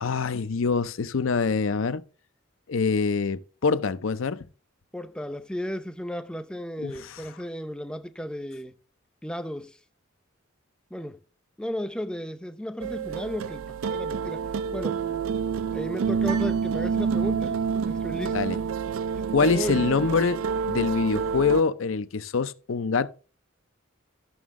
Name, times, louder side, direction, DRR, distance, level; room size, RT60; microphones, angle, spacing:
voice 1, 0.0-2.0 2.7-4.4 6.8-7.2 18.3-18.6 19.3-20.4 20.7-23.1, left 4 dB, 65° left, 0.5 m, -25 dB
voice 2, 4.9-8.8 9.2-9.8 10.9-11.2 11.6-14.4 14.7-15.0 15.7-18.6 19.4-19.9, equal, 5° left, 0.5 m, -34 dB
sound 1, 12.8-21.6, right 6 dB, 70° right, 0.4 m, -28 dB
sound 2, 16.2-17.7, right 8 dB, 85° right, 1.2 m, -42 dB
13.0 x 6.2 x 3.6 m
head